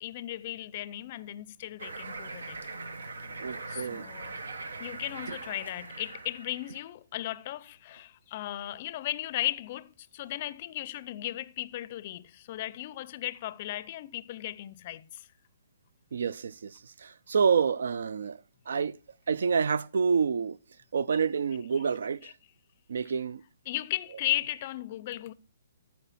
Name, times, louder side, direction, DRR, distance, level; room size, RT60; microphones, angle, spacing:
voice 1, 0.0-2.6 3.7-4.4 4.8-15.3 22.2-22.3 23.7-25.3, left 14 dB, 40° left, 0.5 m, -36 dB
sound 1, 1.8-6.8, right 3 dB, 90° right, 1.0 m, -41 dB
voice 2, 3.4-4.1 5.3-5.4 16.1-18.4 18.7-18.9 19.3-20.6 20.9-22.3 22.9-23.4, right 6 dB, 75° right, 0.4 m, -28 dB
13.5 x 4.6 x 4.1 m
hypercardioid pair, 150°, 0 cm